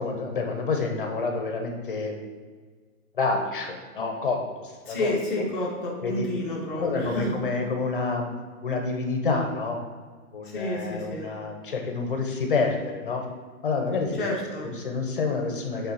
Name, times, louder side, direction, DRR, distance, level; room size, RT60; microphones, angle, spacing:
voice 1, 0.0-2.2 3.1-5.1 6.0-6.3 6.8-8.3 8.6-9.8 10.3-13.2 13.6-14.2 14.6-15.9, left 4 dB, 35° left, 3 dB, 0.8 m, -28 dB
voice 2, 4.8-7.3 10.4-11.3 14.2-14.7, left 1 dB, ahead, -13 dB, 0.7 m, -29 dB
8.1 x 3.7 x 5.4 m, 1.5 s
hypercardioid pair, 165°, 45 cm